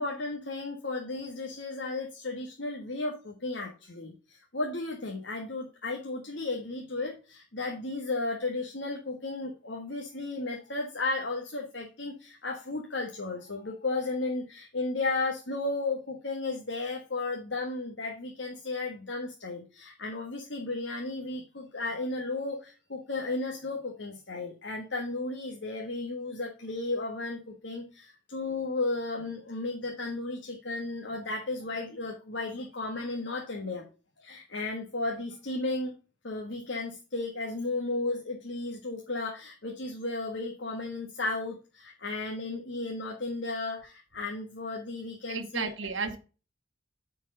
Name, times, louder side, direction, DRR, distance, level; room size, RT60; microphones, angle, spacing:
voice 1, 0.0-33.9 34.2-35.9 36.2-45.7, left 2 dB, 65° left, 0 dB, 1.5 m, -34 dB
voice 2, 45.3-46.2, right 4 dB, 80° right, 5 dB, 1.0 m, -33 dB
9.6 x 4.6 x 3.8 m, 0.35 s
head